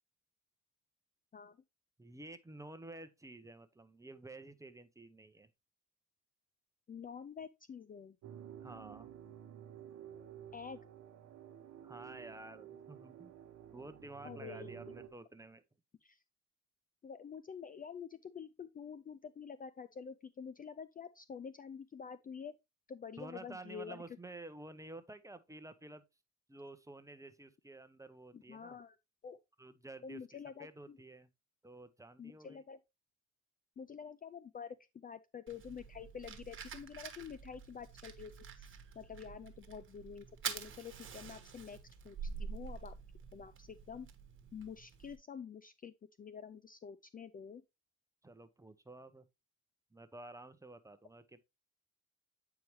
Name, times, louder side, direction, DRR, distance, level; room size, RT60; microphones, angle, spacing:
voice 1, 2.0-5.5 8.6-9.1 11.8-13.3 13.7-15.6 23.2-26.0 26.5-28.8 29.6-30.2 30.6-31.3 31.6-32.6 48.2-49.2 49.9-51.5, right 2 dB, 10° right, 0.8 m, -51 dB
voice 2, 6.9-8.2 10.5-10.8 14.2-14.9 16.0-16.2 17.0-22.5 22.9-24.0 28.3-29.0 29.2-29.4 30.0-31.0 32.2-32.8 33.8-41.8 42.0-43.0 43.3-44.1 44.5-47.6, left 6 dB, 30° left, 0.4 m, -48 dB
sound 1, 8.2-15.1, right 10 dB, 80° right, 1.0 m, -52 dB
Fire, 35.5-45.2, right 6 dB, 40° right, 1.3 m, -47 dB
8.5 x 4.7 x 3.1 m
cardioid pair, 90°, 30 cm